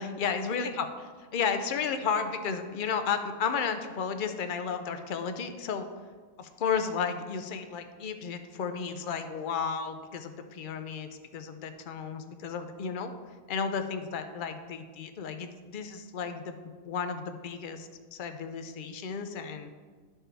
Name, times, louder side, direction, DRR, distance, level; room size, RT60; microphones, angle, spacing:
voice 1, 0.0-5.9 6.4-13.1 13.5-16.6 16.8-19.7, left 6 dB, 65° left, 8 dB, 0.5 m, -33 dB
12.0 x 4.5 x 3.3 m, 1.5 s
omnidirectional pair, 1.5 m